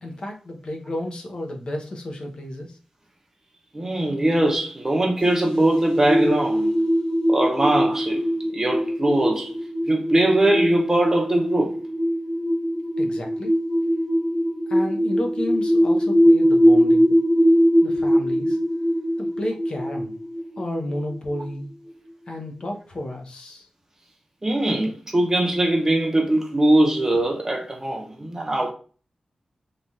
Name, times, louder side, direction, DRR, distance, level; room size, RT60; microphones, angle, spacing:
voice 1, 0.0-2.8 13.0-13.5 14.7-17.2 17.8-18.6 19.2-20.2 20.6-21.7 22.3-23.7, left 1 dB, 50° left, 0.6 m, -32 dB
voice 2, 3.7-6.8 7.3-9.5 9.9-11.7 24.4-28.7, right 1 dB, 20° right, 0.6 m, -21 dB
sound 1, 5.2-21.5, equal, 65° left, 0.9 m, -21 dB
3.2 x 2.3 x 2.7 m
wide cardioid pair, 135°, 2 cm